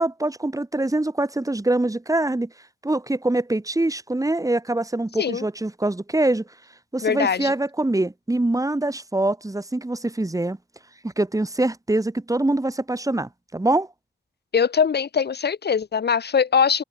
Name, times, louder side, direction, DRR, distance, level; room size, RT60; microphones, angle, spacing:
voice 1, 0.0-2.5 2.8-6.4 6.9-10.6 11.0-13.9, right 2 dB, 15° right, 3.0 m, -24 dB
voice 2, 7.0-7.5 14.5-16.8, left 6 dB, 60° left, 3.0 m, -21 dB
open air
supercardioid pair, 50°, 19 cm